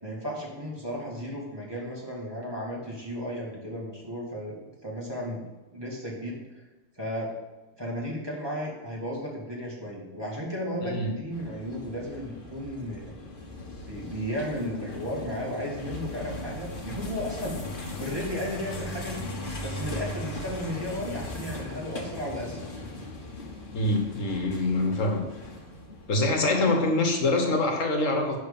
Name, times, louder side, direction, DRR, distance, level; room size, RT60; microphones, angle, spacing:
voice 1, 0.0-4.5 4.8-5.4 5.7-6.4 6.9-7.3 7.8-13.1 13.9-17.6 18.0-19.3 19.6-22.8, equal, 20° right, -4 dB, 2.3 m, -34 dB
sound 1, 11.3-26.4, left 1 dB, 45° left, 1.4 m, -38 dB
voice 2, 23.7-25.3 26.1-28.4, left 2 dB, 85° left, 3 dB, 1.7 m, -25 dB
11.0 x 3.8 x 7.0 m, 1.1 s
omnidirectional pair, 1.3 m